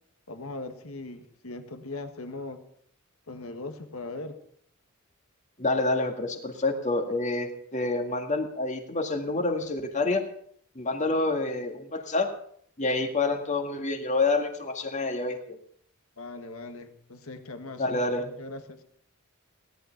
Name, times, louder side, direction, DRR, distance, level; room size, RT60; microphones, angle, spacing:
voice 1, 0.3-2.6 3.3-4.4 16.2-18.8, left 2 dB, 75° left, 8 dB, 1.6 m, -39 dB
voice 2, 5.6-10.2 10.8-12.3 12.8-15.4 17.8-18.3, left 2 dB, 35° left, 5 dB, 1.9 m, -27 dB
17.0 x 11.5 x 5.9 m, 0.65 s
head